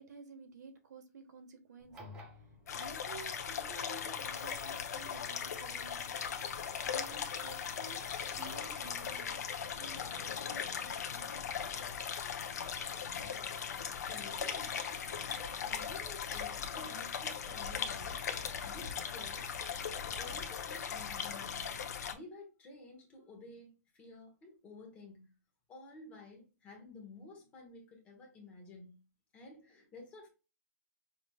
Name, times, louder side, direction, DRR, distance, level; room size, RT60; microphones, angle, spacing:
voice 1, 0.0-2.2 2.7-6.1 6.8-8.0 8.5-9.4 9.8-11.4, right 5 dB, 90° right, 1.3 m, -52 dB
sound 1, 1.8-8.7, left 1 dB, 10° right, 0.7 m, -56 dB
sound 2, 2.7-22.1, left 7 dB, 70° left, 0.9 m, -39 dB
voice 2, 13.2-13.7 13.9-14.9 15.2-19.7 19.9-21.8 22.1-25.2 25.7-29.0 29.3-30.3, left 2 dB, 15° left, 1.1 m, -53 dB
5.8 x 3.2 x 2.3 m
hypercardioid pair, 175°, 9 cm